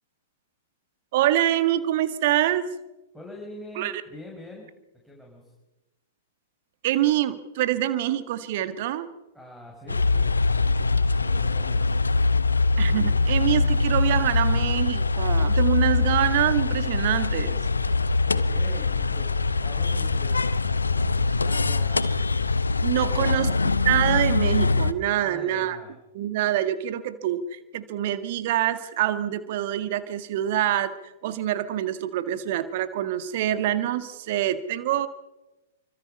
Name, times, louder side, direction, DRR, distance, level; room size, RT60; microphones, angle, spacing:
voice 1, 1.1-2.6 3.8-3.9 6.8-9.1 12.8-17.6 22.8-23.5 23.9-25.8 26.1-35.1, right 13 dB, 45° right, 11 dB, 1.8 m, -25 dB
voice 2, 3.1-4.7 5.0-5.5 9.3-10.3 10.6-12.1 18.2-19.3 19.6-20.5 20.8-22.3 23.1-23.7 25.2-26.0, left 1 dB, ahead, -2 dB, 5.7 m, -44 dB
sound 1, 9.9-24.9, left 3 dB, 75° left, 1.1 m, -23 dB
28.5 x 25.0 x 5.5 m, 1.0 s
figure-of-eight pair, 105°, 0 cm